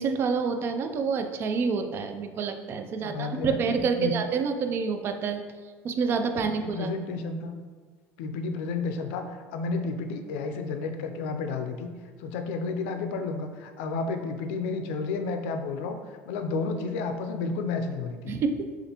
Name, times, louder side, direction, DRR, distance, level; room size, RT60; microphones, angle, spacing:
voice 1, 0.0-5.4 5.8-6.9 18.3-18.5, right 5 dB, 35° right, 7 dB, 0.4 m, -28 dB
voice 2, 3.0-4.1 6.6-7.5 8.2-11.9 12.2-16.0 16.3-18.3, left 4 dB, 85° left, 6 dB, 0.4 m, -31 dB
6.5 x 2.4 x 2.9 m, 1.5 s
cardioid pair, 135°, 6 cm